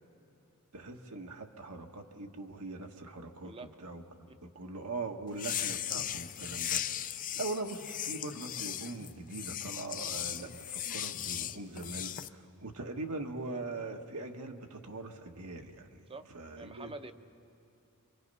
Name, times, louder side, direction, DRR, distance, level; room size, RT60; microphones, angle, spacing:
voice 1, 0.7-3.5 3.8-16.0 16.3-16.9, right 2 dB, 75° right, 3 dB, 1.5 m, -41 dB
voice 2, 3.4-3.7 4.3-4.4 16.1-16.3 16.5-17.1, right 3 dB, 25° right, 8 dB, 0.8 m, -46 dB
sound 1, 5.3-12.3, left 10 dB, 35° left, 0.5 m, -37 dB
28.0 x 24.0 x 5.5 m, 2.8 s
head